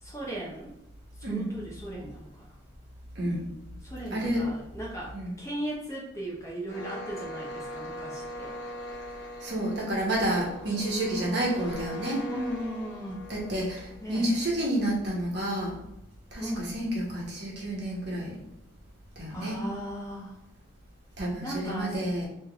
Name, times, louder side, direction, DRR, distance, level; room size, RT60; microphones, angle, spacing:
voice 1, 0.0-0.7 1.2-2.4 3.8-8.6 12.3-13.2 14.0-14.4 16.4-16.7 19.3-20.3 21.4-22.0, right 1 dB, 15° left, -3 dB, 0.7 m, -37 dB
voice 2, 3.2-3.5 4.1-4.5 5.1-5.3 9.4-12.2 13.3-15.7 16.3-18.4 19.2-19.6 21.2-22.3, right 1 dB, 55° right, -3 dB, 1.2 m, -29 dB
sound 1, 6.7-14.4, equal, 60° left, 0.9 m, -41 dB
3.5 x 3.0 x 3.5 m, 0.84 s
head